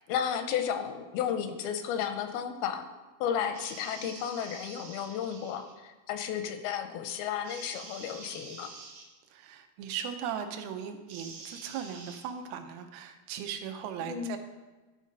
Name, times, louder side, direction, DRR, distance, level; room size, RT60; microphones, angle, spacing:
voice 1, 0.1-2.9 3.2-8.7 14.0-14.4, left 8 dB, 90° left, 8 dB, 2.6 m, -33 dB
sound 1, 3.5-5.7 7.4-9.1 11.1-12.2, right 4 dB, 65° right, 1.5 m, -47 dB
voice 2, 9.3-14.4, right 8 dB, 90° right, 7 dB, 2.6 m, -38 dB
11.0 x 3.9 x 5.2 m, 1.2 s
omnidirectional pair, 4.3 m